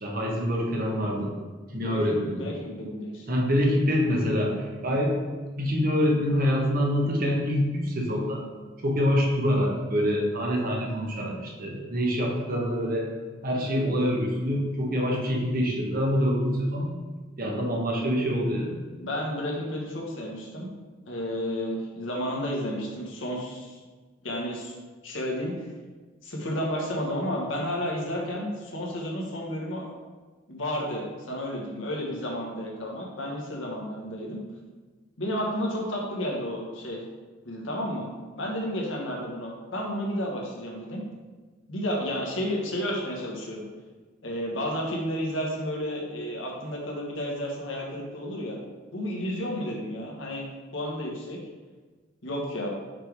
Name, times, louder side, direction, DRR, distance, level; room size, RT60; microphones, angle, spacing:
voice 1, 0.0-1.3 1.7-2.4 3.3-5.2 5.5-8.4 8.8-13.1 13.4-16.9 17.4-18.8, equal, 50° right, -1 dB, 1.2 m, -25 dB
voice 2, 1.7-3.3 19.0-20.7 21.1-23.8 24.2-24.8 25.0-25.5 26.2-29.9 30.5-34.4 35.2-37.0 37.4-38.1 38.4-41.0 41.7-43.6 44.2-48.6 48.9-51.4 52.2-52.7, equal, 75° left, -1 dB, 1.3 m, -32 dB
5.9 x 3.5 x 4.7 m, 1.4 s
head